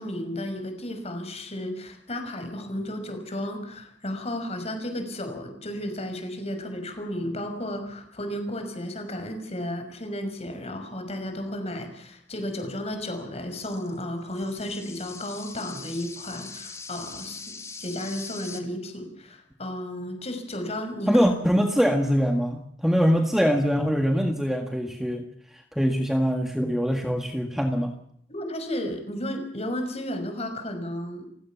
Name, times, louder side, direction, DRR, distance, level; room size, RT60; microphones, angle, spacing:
voice 1, 0.0-17.5 17.8-21.3 28.3-31.3, left 1 dB, 35° left, 6 dB, 5.8 m, -33 dB
sound 1, 13.6-18.6, left 4 dB, 15° left, 2.5 m, -42 dB
voice 2, 21.1-25.3 25.7-27.9, equal, ahead, 4 dB, 1.7 m, -23 dB
29.5 x 16.5 x 7.2 m, 0.68 s
head